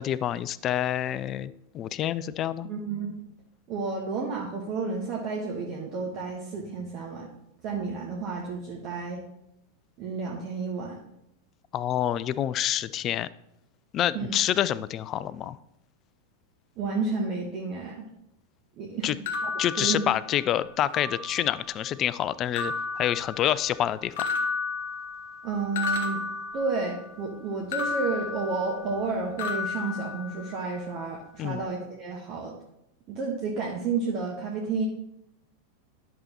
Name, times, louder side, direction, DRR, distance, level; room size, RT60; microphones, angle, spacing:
voice 1, 0.0-2.7 11.7-13.3 13.9-15.6 19.0-19.2 19.6-24.1 31.4-31.6, left 11 dB, 30° left, 17 dB, 0.3 m, -27 dB
voice 2, 2.6-3.2 3.7-7.3 7.6-9.2 10.0-11.0 14.1-14.3 16.8-18.0 18.8-19.2 19.4-19.5 19.8-20.0 25.4-26.2 26.5-32.5 33.1-34.9, right 4 dB, 40° right, -2 dB, 1.3 m, -31 dB
sound 1, 19.3-20.5 20.9-21.7 22.6-23.8 24.2-27.1 27.7-29.1 29.4-30.7, left 4 dB, 55° left, 1.1 m, -33 dB
10.5 x 6.6 x 2.9 m, 0.80 s
figure-of-eight pair, 90°, 0 cm